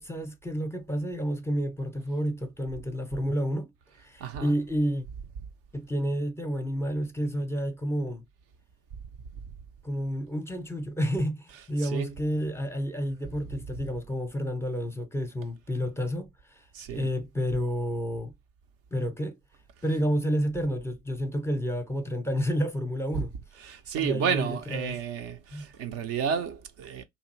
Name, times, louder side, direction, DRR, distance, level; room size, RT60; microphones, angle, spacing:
voice 1, 0.0-3.7 4.0-5.0 5.7-8.2 9.8-16.3 16.9-18.3 18.9-19.4 19.8-23.3 24.0-25.0 25.5-25.7, equal, 10° left, 0.6 m, -30 dB
voice 2, 4.2-4.5 11.8-12.1 16.7-17.1 23.6-27.0, right 7 dB, 50° right, 0.5 m, -31 dB
2.8 x 2.5 x 2.9 m
figure-of-eight pair, 60°, 31 cm